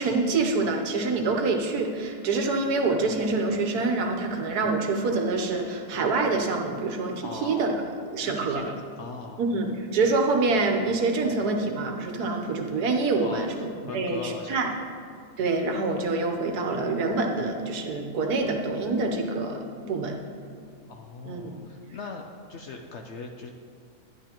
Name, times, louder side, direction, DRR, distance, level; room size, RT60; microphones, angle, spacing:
voice 1, 0.0-7.7 8.1-8.6 9.4-13.7 13.9-14.7 15.4-20.2 20.5-20.6 21.2-21.6, right 3 dB, 80° right, 3 dB, 1.4 m, -26 dB
voice 2, 7.2-7.7 8.2-9.4 13.2-14.7 20.9-23.5, left 4 dB, 65° left, 3 dB, 0.7 m, -40 dB
11.0 x 11.0 x 2.9 m, 2.3 s
omnidirectional pair, 1.6 m